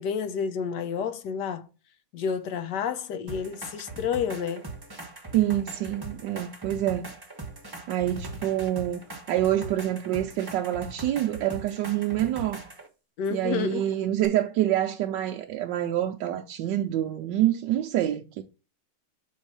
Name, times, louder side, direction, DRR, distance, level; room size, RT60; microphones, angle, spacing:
voice 1, 0.0-1.7 2.1-4.7 13.2-13.9, left 7 dB, 65° left, 1.1 m, -30 dB
sound 1, 3.3-12.9 14.2-14.3, right 2 dB, 15° right, 0.8 m, -40 dB
voice 2, 5.3-7.1 7.9-9.0 9.3-12.6 13.3-18.4, right 12 dB, 70° right, 1.1 m, -26 dB
6.2 x 3.7 x 5.4 m
omnidirectional pair, 2.4 m